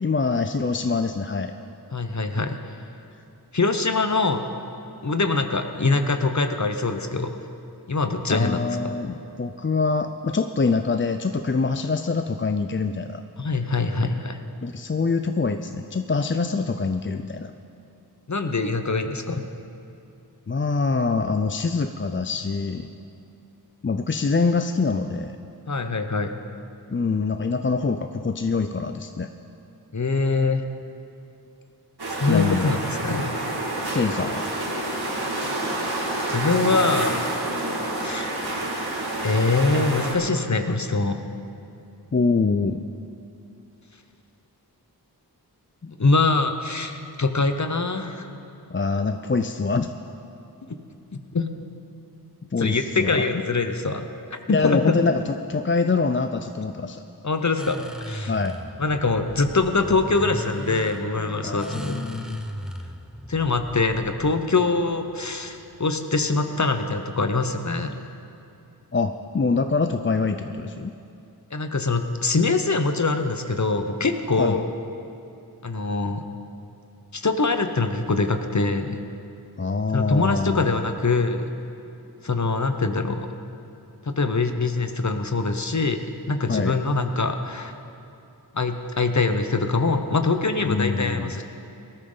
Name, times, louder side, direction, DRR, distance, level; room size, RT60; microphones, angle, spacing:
voice 1, 0.0-1.5 8.3-13.2 14.6-17.5 20.5-22.9 23.8-25.4 26.9-29.3 32.2-32.7 33.9-34.5 42.1-42.8 45.8-45.9 48.7-49.9 52.5-53.2 54.5-57.0 58.3-58.6 61.4-62.5 68.9-70.9 74.4-74.6 79.6-80.8 86.5-86.8 90.6-91.4, left 4 dB, 30° left, 7 dB, 0.5 m, -25 dB
voice 2, 1.9-2.6 3.5-4.4 5.0-7.4 7.9-8.6 13.4-14.4 18.3-19.5 25.7-26.3 29.9-30.7 32.2-33.4 36.3-37.3 38.0-38.3 39.2-41.3 46.0-48.3 51.1-51.5 52.6-54.8 57.2-58.3 58.8-62.0 63.3-68.0 71.5-74.7 75.6-76.2 77.1-79.0 79.9-81.4 82.2-83.3 84.0-87.8 88.5-91.4, left 3 dB, 45° left, 7 dB, 1.0 m, -23 dB
sound 1, 32.0-40.1, right 1 dB, 80° right, 2.2 m, -28 dB
tubo de escape, 57.6-65.9, equal, ahead, 0.9 m, -37 dB
19.0 x 13.0 x 4.0 m, 2.7 s
wide cardioid pair, 50°, 38 cm